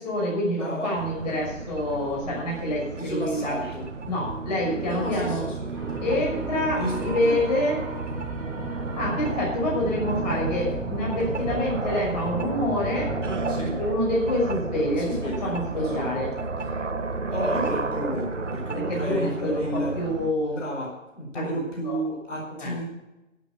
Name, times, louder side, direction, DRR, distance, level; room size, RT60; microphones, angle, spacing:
voice 1, 0.0-3.6 4.1-5.4 6.0-7.8 9.0-13.2 13.8-16.3 18.7-20.6 21.3-22.0 22.5-22.8, left 1 dB, 30° left, -2 dB, 6.2 m, -27 dB
voice 2, 0.5-0.9 3.0-3.8 4.9-6.0 6.8-7.4 13.5-13.8 15.0-16.2 17.3-20.0 20.5-22.8, equal, 65° left, -1 dB, 4.7 m, -32 dB
sound 1, 1.0-20.3, right 3 dB, 65° right, 1.4 m, -32 dB
sound 2, 5.7-13.3, right 2 dB, 5° right, 1.1 m, -35 dB
13.0 x 8.7 x 7.1 m, 1.0 s
figure-of-eight pair, 140°, 39 cm